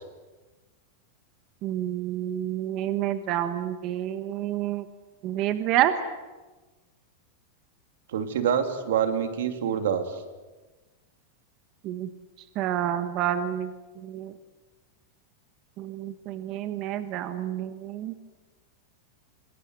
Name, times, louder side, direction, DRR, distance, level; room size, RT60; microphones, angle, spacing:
voice 1, 1.6-4.9 5.2-5.9 11.8-12.1 12.5-14.3 15.8-18.1, right 12 dB, 35° right, 10 dB, 1.3 m, -29 dB
voice 2, 8.1-10.2, right 8 dB, 85° right, 7 dB, 3.1 m, -26 dB
26.0 x 20.5 x 9.5 m, 1.2 s
supercardioid pair, 165°, 0 cm